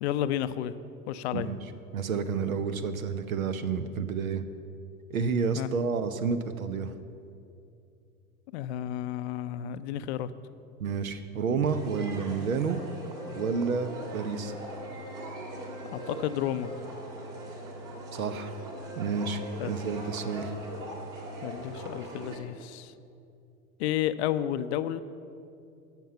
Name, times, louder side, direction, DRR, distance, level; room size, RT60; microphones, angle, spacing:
voice 1, 0.0-0.7 1.1-1.5 5.5-5.7 8.5-10.3 15.9-16.7 19.6-19.7 21.4-22.9 23.8-25.0, left 12 dB, 50° left, 13 dB, 0.6 m, -31 dB
voice 2, 1.9-4.4 5.1-6.9 10.8-12.8 13.4-14.5 18.1-18.6 19.0-20.5, right 5 dB, 75° right, 11 dB, 0.8 m, -30 dB
sound 1, 11.6-21.6, right 1 dB, 85° left, 1.0 m, -47 dB
sound 2, 11.7-22.4, right 1 dB, 45° right, 2.5 m, -41 dB
16.5 x 6.0 x 5.7 m, 2.6 s
figure-of-eight pair, 75°, 42 cm